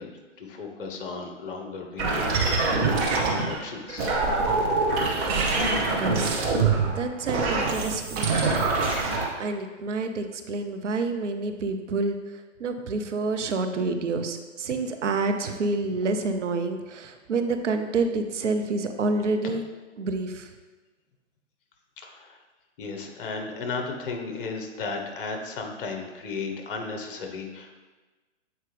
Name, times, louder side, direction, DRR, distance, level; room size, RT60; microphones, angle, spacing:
voice 1, 0.0-4.2 22.0-22.4 22.8-27.8, left 4 dB, 45° left, 3 dB, 1.1 m, -35 dB
sound 1, 2.0-3.6 3.9-9.3, right 3 dB, 25° right, 0.9 m, -24 dB
voice 2, 5.9-6.4 6.8-19.6 20.0-20.5, right 3 dB, 70° right, 7 dB, 0.8 m, -28 dB
7.8 x 4.5 x 3.3 m, 1.3 s
hypercardioid pair, 135°, 37 cm